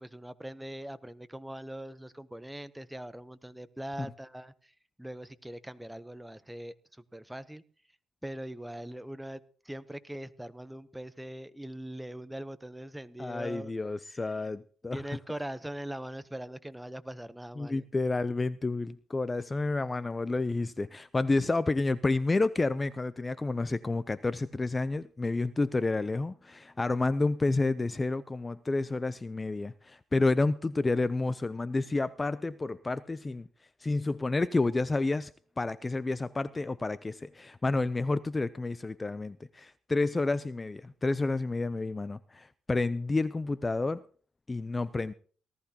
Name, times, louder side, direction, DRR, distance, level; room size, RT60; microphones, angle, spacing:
voice 1, 0.0-7.6 8.2-13.7 14.1-14.3 14.9-17.9, right 1 dB, 5° right, 0.8 m, -42 dB
voice 2, 13.2-15.0 17.6-33.5 33.8-35.3 35.6-44.0 44.5-45.1, left 3 dB, 20° left, 0.5 m, -30 dB
18.5 x 13.5 x 2.9 m
cardioid pair, 90°, 0 cm